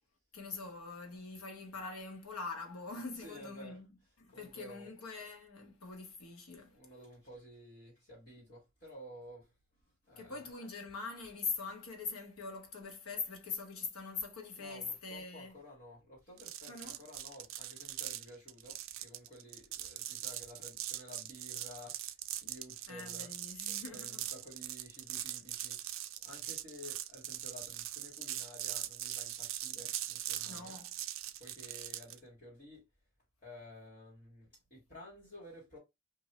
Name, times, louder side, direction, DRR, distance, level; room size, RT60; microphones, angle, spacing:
voice 1, 0.3-3.9 4.2-6.8 10.2-15.5 16.7-17.0 22.9-24.2 30.5-30.9, left 4 dB, 80° left, 1.0 m, -43 dB
voice 2, 3.1-3.8 4.3-4.9 6.7-9.5 9.8-10.4 14.5-23.4 23.7-30.8 31.4-32.9 33.4-35.8, left 1 dB, 40° left, 1.8 m, -53 dB
sound 1, 16.4-32.2, right 13 dB, 60° right, 0.4 m, -41 dB
3.0 x 2.7 x 2.9 m
head